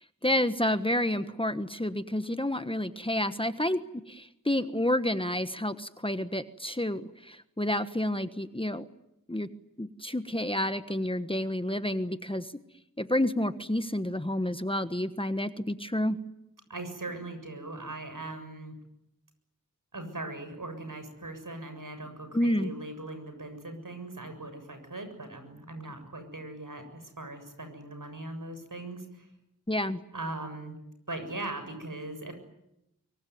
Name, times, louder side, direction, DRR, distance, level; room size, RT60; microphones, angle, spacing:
voice 1, 0.2-3.8 4.1-8.8 9.3-9.5 9.8-12.5 13.0-16.2 22.3-22.7 29.7-30.0, left 1 dB, 15° left, 11 dB, 1.3 m, -29 dB
voice 2, 16.7-18.7 19.9-29.3 30.1-30.8 31.1-32.3, right 2 dB, 70° right, 8 dB, 7.1 m, -40 dB
24.5 x 24.0 x 9.4 m, 0.83 s
wide cardioid pair, 50°, 33 cm